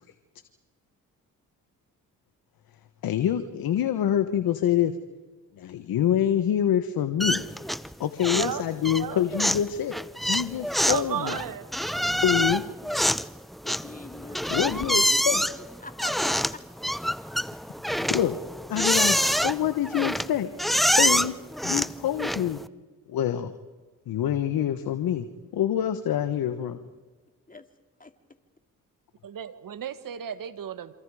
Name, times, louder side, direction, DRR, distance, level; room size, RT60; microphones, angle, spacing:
voice 1, 3.0-5.0 5.6-7.4 8.0-9.9 10.3-11.3 12.2-12.6 14.5-15.4 17.9-18.3 18.7-19.2 19.4-20.5 21.0-21.3 21.6-22.6 23.1-23.5 24.1-25.3 25.5-26.8, left 10 dB, 70° left, 10 dB, 1.3 m, -26 dB
sound 1, 7.2-7.9 8.2-8.6 8.8-22.7, equal, ahead, 0.7 m, -26 dB
voice 2, 8.3-9.3 10.8-11.9 29.2-30.9, right 9 dB, 60° right, 12 dB, 1.8 m, -34 dB
voice 3, 13.6-16.6 27.5-27.7 28.0-28.1, left 3 dB, 20° left, 7 dB, 2.6 m, -44 dB
27.5 x 26.5 x 4.9 m, 1.3 s
supercardioid pair, 50°, 37 cm